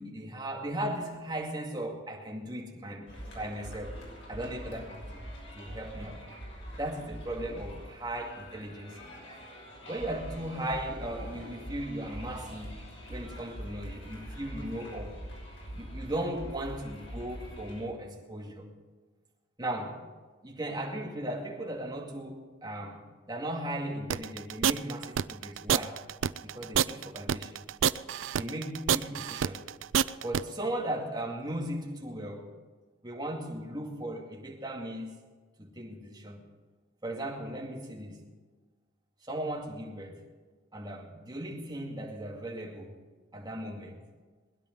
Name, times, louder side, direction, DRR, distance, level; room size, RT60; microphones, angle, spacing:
voice 1, 0.0-4.0 4.3-5.3 5.5-6.2 6.7-9.1 9.9-12.8 13.1-15.1 15.7-18.6 19.6-20.0 20.4-26.0 26.4-27.6 28.3-29.7 30.2-32.5 33.0-35.1 35.6-36.4 37.0-38.2 39.3-40.2 40.7-43.0 43.3-44.0, right 1 dB, 20° right, -2 dB, 2.3 m, -37 dB
sound 1, 3.1-17.8, equal, 75° left, 6.0 m, -44 dB
sound 2, 24.1-30.4, right 8 dB, 75° right, 0.4 m, -27 dB
21.0 x 10.5 x 5.4 m, 1.4 s
head